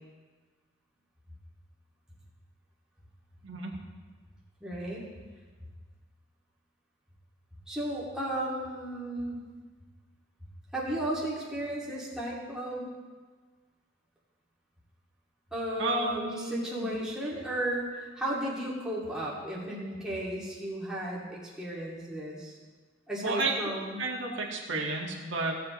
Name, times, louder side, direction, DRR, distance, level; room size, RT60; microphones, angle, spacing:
voice 1, 4.6-5.1 7.7-9.4 10.7-12.9 15.5-22.6 23.1-24.0, right 1 dB, 5° right, -7 dB, 2.4 m, -34 dB
voice 2, 15.8-16.9 23.2-23.6 24.0-25.6, right 2 dB, 60° right, -1 dB, 1.8 m, -31 dB
17.5 x 7.5 x 3.1 m, 1.4 s
head